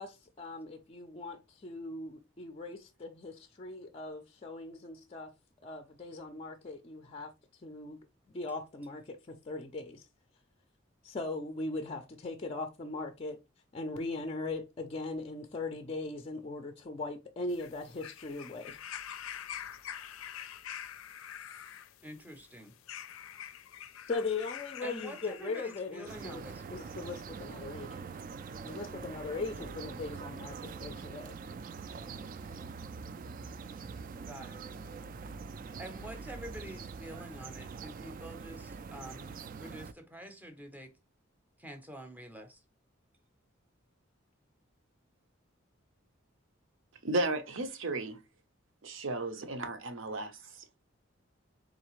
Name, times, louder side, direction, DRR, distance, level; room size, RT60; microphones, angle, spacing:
voice 1, 0.0-5.3 5.6-7.3 7.6-8.0 8.3-10.1 11.0-13.4 13.7-18.8 24.1-26.4 26.7-28.1 28.6-31.4, left 3 dB, 30° left, 0.4 m, -39 dB
sound 1, 17.5-26.2 27.1-27.2, left 9 dB, 85° left, 0.4 m, -46 dB
voice 2, 22.0-22.7 24.8-26.6 34.2-34.6 35.8-40.9 41.6-42.6, right 1 dB, 10° right, 0.6 m, -47 dB
sound 2, 26.1-39.9, right 5 dB, 40° right, 0.3 m, -44 dB
voice 3, 47.0-48.2 48.8-50.6, right 2 dB, 70° right, 0.8 m, -34 dB
3.9 x 3.2 x 3.0 m
head